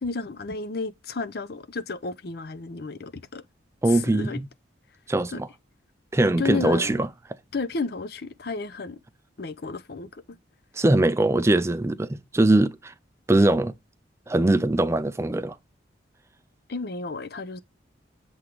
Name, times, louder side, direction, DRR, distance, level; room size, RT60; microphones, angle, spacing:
voice 1, 0.0-3.4 3.9-4.4 5.3-5.4 6.4-7.0 7.5-9.0 9.4-10.4 16.7-17.6, left 4 dB, 55° left, 0.6 m, -32 dB
voice 2, 3.8-4.4 5.1-5.5 6.1-7.1 10.8-12.9 13.3-13.7 14.3-15.6, right 2 dB, 15° right, 0.4 m, -21 dB
7.9 x 3.6 x 4.7 m
head